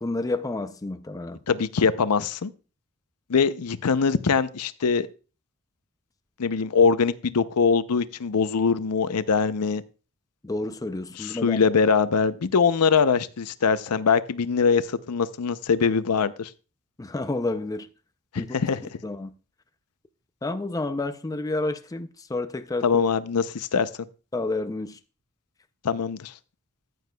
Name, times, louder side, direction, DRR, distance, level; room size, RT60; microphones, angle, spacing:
voice 1, 0.0-1.4 10.4-11.6 17.0-17.9 18.4-18.6 19.0-19.3 20.4-23.0 24.3-25.0, left 2 dB, 15° left, 0.4 m, -30 dB
voice 2, 1.5-2.5 3.3-5.1 6.4-9.8 11.2-16.5 18.3-19.0 22.8-23.9 25.8-26.3, left 5 dB, 85° left, 0.6 m, -22 dB
14.0 x 9.3 x 2.3 m
head